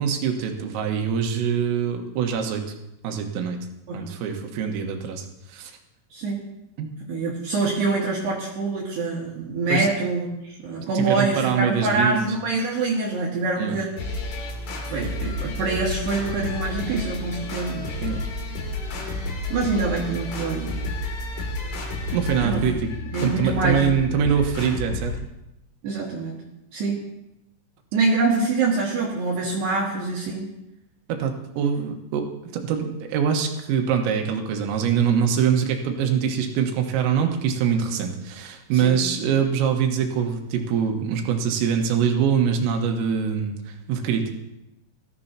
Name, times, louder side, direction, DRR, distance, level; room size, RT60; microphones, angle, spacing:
voice 1, 0.0-2.6 3.0-3.6 3.9-5.7 6.8-6.9 9.7-9.9 10.8-12.3 13.6-13.8 18.0-18.2 22.1-22.8 23.2-25.2 31.1-32.3 32.5-44.3, right 7 dB, 85° right, 3 dB, 4.0 m, -24 dB
voice 2, 7.1-13.9 14.9-18.1 19.5-20.9 22.4-22.6 23.1-24.2 25.8-26.4 26.7-27.0 27.9-30.5 38.7-39.0, right 3 dB, 65° right, -4 dB, 3.3 m, -25 dB
sound 1, 14.0-25.2, left 2 dB, 70° left, 5.0 m, -31 dB
19.5 x 13.5 x 2.9 m, 0.87 s
omnidirectional pair, 6.0 m